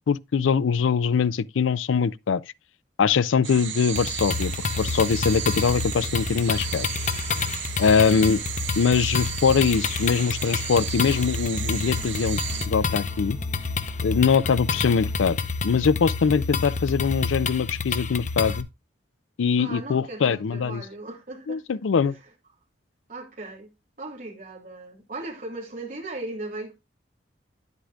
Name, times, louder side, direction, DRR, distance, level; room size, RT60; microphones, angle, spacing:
voice 1, 0.1-2.4 3.0-4.5 4.8-6.9 7.8-8.4 8.8-12.4 12.7-13.4 14.0-15.4 15.6-18.7 19.4-20.8 21.5-22.1, left 6 dB, 90° left, 0.4 m, -22 dB
sound 1, 3.4-12.7, right 10 dB, 80° right, 1.0 m, -34 dB
sound 2, 4.0-18.6, left 4 dB, 40° left, 0.6 m, -29 dB
voice 2, 8.0-8.4 19.6-22.2 23.1-23.7 24.0-26.7, right 2 dB, 45° right, 2.6 m, -38 dB
sound 3, 10.0-15.3, equal, 25° right, 1.4 m, -49 dB
10.0 x 8.2 x 2.3 m
head